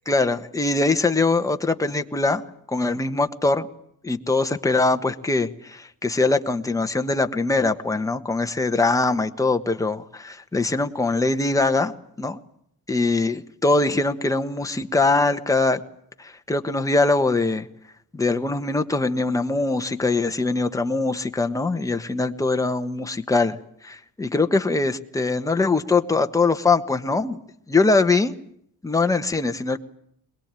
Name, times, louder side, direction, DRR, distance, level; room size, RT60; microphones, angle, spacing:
voice 1, 0.1-2.4 2.7-3.7 4.0-11.9 12.2-12.4 12.9-15.8 16.2-17.7 18.1-27.4 27.7-28.3 28.8-29.8, left 3 dB, 10° left, 6 dB, 1.2 m, -22 dB
22.0 x 21.0 x 9.0 m, 0.71 s
cardioid pair, 140°, 36 cm